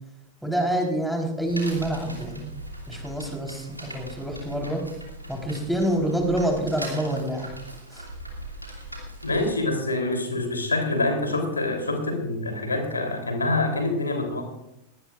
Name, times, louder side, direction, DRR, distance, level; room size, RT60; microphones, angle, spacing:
voice 1, 0.4-2.5 2.9-4.8 5.3-7.5 7.9-8.1, right 1 dB, ahead, 1 dB, 4.0 m, -27 dB
sound 1, 1.5-9.5, right 1 dB, 85° right, 2.8 m, -40 dB
voice 2, 9.2-14.5, left 2 dB, 80° left, 4 dB, 3.4 m, -26 dB
21.0 x 17.5 x 2.5 m, 0.85 s
figure-of-eight pair, 90°, 0 cm